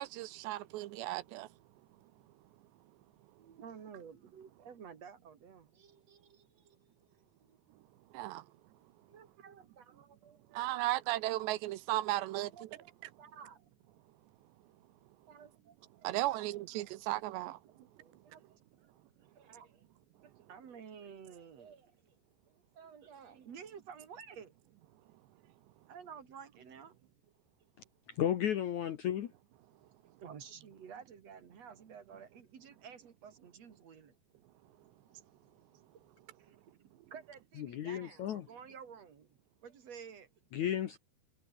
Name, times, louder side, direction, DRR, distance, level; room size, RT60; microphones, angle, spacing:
voice 1, 0.0-1.5 8.1-8.5 10.5-12.7 16.0-17.6, right 16 dB, 85° right, 3.2 m, -35 dB
voice 2, 3.4-7.6 9.1-10.4 12.5-12.8 13.2-13.6 15.3-16.4 17.4-17.5 17.8-18.9 19.2-19.8 20.2-22.0 22.5-24.5 25.9-27.0 30.2-34.1 36.4-36.6 37.1-40.3, right 7 dB, 45° right, 2.9 m, -52 dB
voice 3, 28.2-29.3 37.6-38.4 40.5-41.0, left 10 dB, 65° left, 1.9 m, -33 dB
omnidirectional pair, 4.9 m